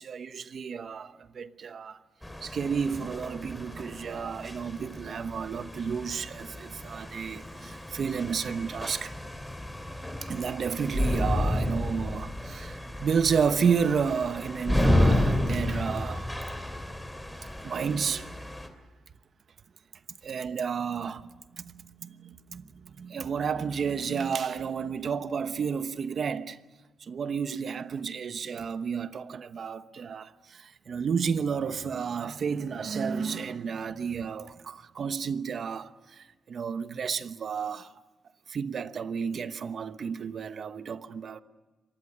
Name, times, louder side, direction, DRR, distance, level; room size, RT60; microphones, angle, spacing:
voice 1, 0.0-2.0 2.4-9.2 10.2-16.3 17.6-18.3 20.2-26.6 27.0-37.9 38.5-41.4, right 6 dB, 55° right, 1.0 m, -31 dB
sound 1, 2.2-18.7, left 1 dB, 5° left, 2.6 m, -31 dB
25.0 x 20.0 x 9.8 m
cardioid pair, 95°, 0 cm